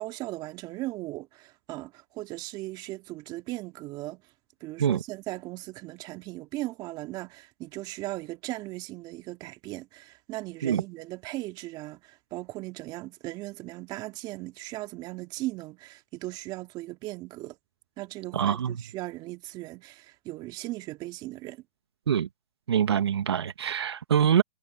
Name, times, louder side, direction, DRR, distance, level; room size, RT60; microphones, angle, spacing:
voice 1, 0.0-4.2 4.6-17.6 18.0-21.6, right 18 dB, 30° right, 2.5 m, -38 dB
voice 2, 18.3-18.8 22.1-22.3 22.7-24.4, right 8 dB, 75° right, 1.8 m, -24 dB
hypercardioid pair, 130°, 14 cm